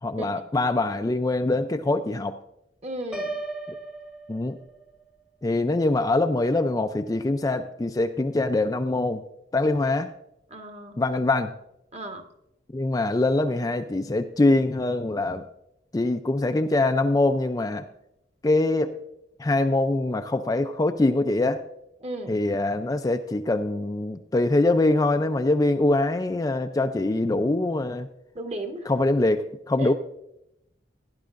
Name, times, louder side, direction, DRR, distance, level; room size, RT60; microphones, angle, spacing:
voice 1, 0.0-2.4 3.7-3.8 4.3-4.6 5.4-9.2 9.5-10.1 11.0-11.5 12.7-15.4 15.9-17.9 18.4-18.9 19.4-21.6 22.3-28.1 28.9-29.9, left 2 dB, 20° left, 7 dB, 0.3 m, -23 dB
voice 2, 2.8-3.3 10.5-11.0 11.9-12.2 22.0-22.4 28.3-28.9 29.8-29.9, right 1 dB, 35° right, 5 dB, 1.1 m, -35 dB
Piano, 3.1-5.0, right 2 dB, 5° right, 0.8 m, -35 dB
16.5 x 10.5 x 2.5 m, 0.82 s
head